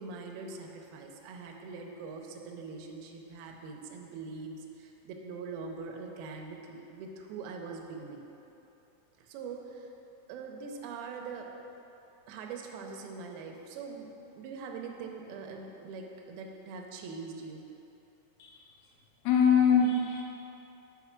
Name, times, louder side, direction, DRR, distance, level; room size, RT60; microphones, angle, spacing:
voice 1, 0.0-8.2 9.2-9.9 10.3-11.5 12.3-14.1 14.4-17.7, right 4 dB, 80° right, 1 dB, 2.5 m, -42 dB
voice 2, 19.3-20.2, left 6 dB, 90° left, 1 dB, 2.9 m, -23 dB
6.7 x 5.9 x 5.8 m, 2.9 s
omnidirectional pair, 4.5 m